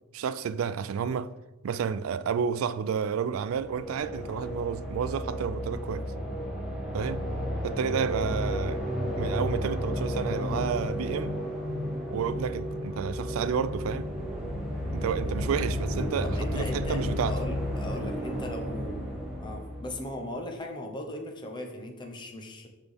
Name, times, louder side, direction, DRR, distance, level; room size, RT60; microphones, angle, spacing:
voice 1, 0.1-1.3 1.6-6.0 6.9-7.2 7.6-8.8 9.2-11.3 12.1-14.1 14.9-17.4, right 7 dB, 90° right, 0.3 m, -31 dB
sound 1, 3.5-20.4, equal, 5° right, 1.6 m, -33 dB
Wind instrument woodwind instrument, 8.3-14.3, right 1 dB, 65° left, 2.2 m, -40 dB
voice 2, 16.2-22.7, left 1 dB, 25° left, 0.9 m, -38 dB
6.1 x 5.5 x 3.4 m
head